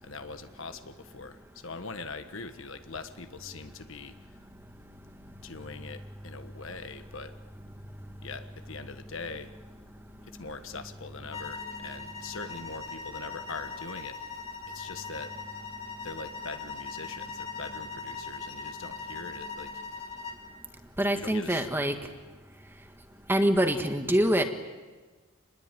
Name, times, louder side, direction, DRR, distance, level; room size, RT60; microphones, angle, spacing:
voice 1, 0.0-4.2 5.4-7.3 8.2-9.5 10.2-14.2 14.7-15.3 16.0-19.7 21.1-21.7, left 4 dB, 60° left, 9 dB, 1.4 m, -42 dB
sound 1, 11.3-20.5, left 4 dB, 30° left, 3.3 m, -40 dB
voice 2, 21.0-22.0 23.3-24.4, equal, 10° right, 6 dB, 1.6 m, -25 dB
27.5 x 21.0 x 9.1 m, 1.4 s
head